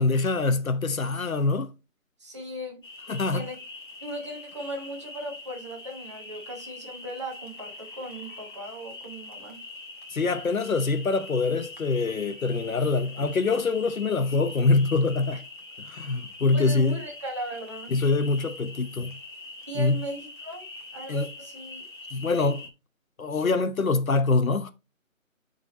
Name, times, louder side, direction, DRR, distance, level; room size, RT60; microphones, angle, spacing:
voice 1, 0.0-1.7 3.1-3.4 10.1-15.4 15.9-17.0 17.9-19.1 19.7-20.0 21.1-21.3 22.1-22.6 23.2-24.7, left 3 dB, 80° left, 0.9 m, -24 dB
voice 2, 2.2-2.8 3.1-3.6 4.0-9.6 15.3-15.4 16.5-17.9 19.7-20.6 20.9-21.8, right 1 dB, 20° right, 1.3 m, -37 dB
sound 1, 2.8-22.7, left 2 dB, 35° left, 1.3 m, -43 dB
8.3 x 4.0 x 3.9 m
figure-of-eight pair, 165°, 41 cm